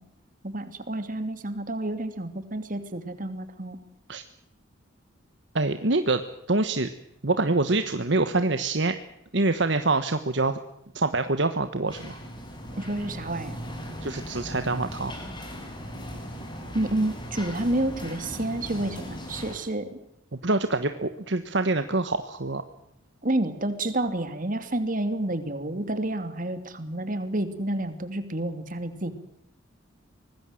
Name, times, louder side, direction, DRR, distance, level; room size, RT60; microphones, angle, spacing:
voice 1, 0.4-3.8 12.8-13.6 16.7-20.0 23.2-29.1, right 1 dB, 40° right, 10 dB, 2.7 m, -29 dB
voice 2, 5.5-6.2 6.5-6.9 7.2-8.9 9.3-10.6 10.9-12.2 14.0-15.1 20.3-22.6, right 2 dB, 60° right, 9 dB, 1.3 m, -25 dB
sound 1, 11.9-19.6, equal, 25° left, 6.4 m, -38 dB
25.0 x 20.0 x 7.7 m, 0.78 s
head